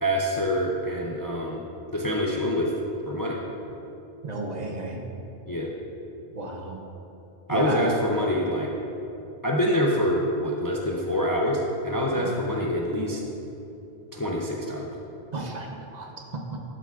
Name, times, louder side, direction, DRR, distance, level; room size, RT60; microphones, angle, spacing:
voice 1, 0.0-1.6 1.9-2.7 3.1-3.4 5.5-5.7 7.5-8.7 9.4-13.2 14.1-14.9, equal, 25° left, -1 dB, 0.5 m, -25 dB
voice 2, 4.2-5.0 6.3-6.8 7.5-7.9 12.1-12.3 15.3-16.4, right 2 dB, 45° right, 0 dB, 0.8 m, -33 dB
11.5 x 7.9 x 2.4 m, 2.9 s
omnidirectional pair, 1.1 m